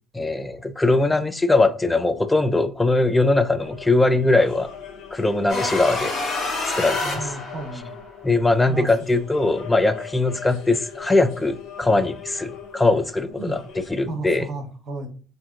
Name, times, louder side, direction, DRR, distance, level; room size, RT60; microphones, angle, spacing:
voice 1, 0.1-4.7 5.1-6.2 6.7-7.3 8.2-13.6 13.9-14.5, left 2 dB, 15° left, 0.4 m, -21 dB
sound 1, 3.6-13.9, left 8 dB, 75° left, 0.7 m, -40 dB
sound 2, 5.5-8.0, left 2 dB, 55° left, 1.3 m, -27 dB
voice 2, 7.0-8.0 8.7-8.9 13.3-13.6 14.1-15.1, right 3 dB, 55° right, 0.8 m, -33 dB
3.4 x 2.6 x 2.4 m
supercardioid pair, 70°, 0 cm